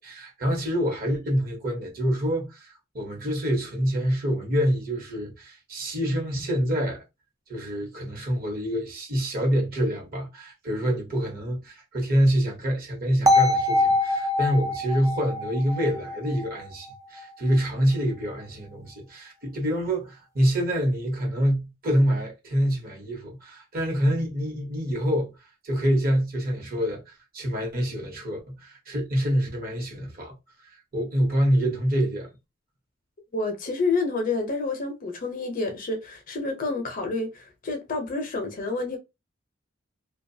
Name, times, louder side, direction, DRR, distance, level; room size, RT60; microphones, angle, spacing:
voice 1, 0.0-7.0 7.5-25.3 25.6-30.3 30.9-32.3, equal, 45° right, 1.0 m, -26 dB
sound 1, 13.3-17.2, left 2 dB, 15° right, 0.4 m, -24 dB
voice 2, 33.3-39.0, left 3 dB, 45° left, 0.6 m, -29 dB
2.5 x 2.3 x 2.6 m
head